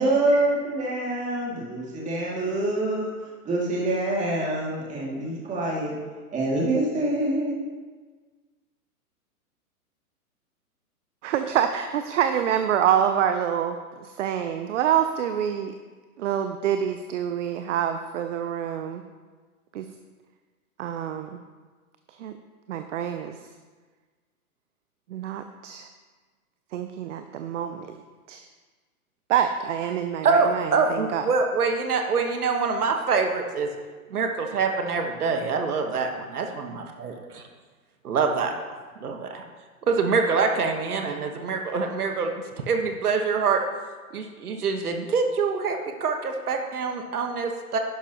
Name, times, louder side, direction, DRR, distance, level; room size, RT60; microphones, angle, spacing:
voice 1, 0.0-3.1 3.4-5.9 6.3-7.6, right 2 dB, 15° right, -3 dB, 2.4 m, -25 dB
voice 2, 11.2-15.7 16.2-19.0 19.7-19.9 20.8-21.4 22.1-22.3 22.7-23.4 25.1-25.9 26.7-28.0 28.3-28.4 29.3-31.2, right 9 dB, 55° right, 8 dB, 0.7 m, -26 dB
voice 3, 30.2-33.7 34.1-37.4 38.0-39.4 39.9-42.3 42.7-43.6 44.1-47.8, right 4 dB, 75° right, 4 dB, 1.4 m, -25 dB
11.5 x 10.5 x 3.0 m, 1.4 s
hypercardioid pair, 125°, 45 cm